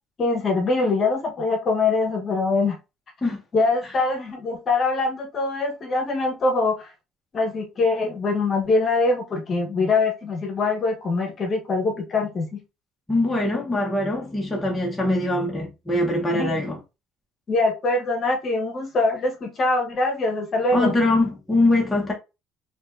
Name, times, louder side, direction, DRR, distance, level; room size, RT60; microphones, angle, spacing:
voice 1, 0.2-2.8 3.5-6.9 7.3-12.6 16.3-16.6 17.5-20.9, left 3 dB, 35° left, 1.2 m, -23 dB
voice 2, 13.1-16.8 20.7-22.1, left 2 dB, 10° left, 1.1 m, -22 dB
4.5 x 2.9 x 2.6 m
cardioid pair, 150°, 0 cm